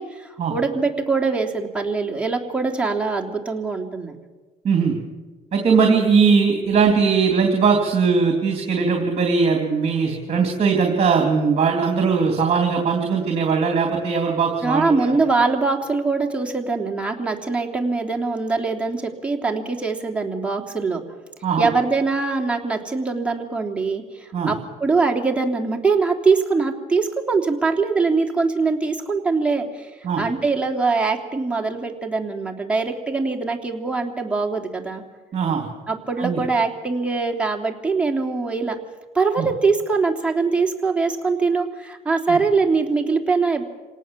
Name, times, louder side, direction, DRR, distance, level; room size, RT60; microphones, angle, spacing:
voice 1, 0.0-4.1 14.6-21.0 21.6-29.9 30.2-35.0 35.9-38.7 39.1-43.6, right 4 dB, 5° right, 0 dB, 3.2 m, -22 dB
voice 2, 4.6-4.9 5.5-15.2 21.4-21.7 24.3-24.5 30.0-30.2 35.3-35.7 36.2-36.4 39.4-39.5 42.3-42.4, right 5 dB, 40° right, 2 dB, 3.4 m, -19 dB
27.0 x 18.5 x 7.5 m, 1.3 s
cardioid pair, 110°, 17 cm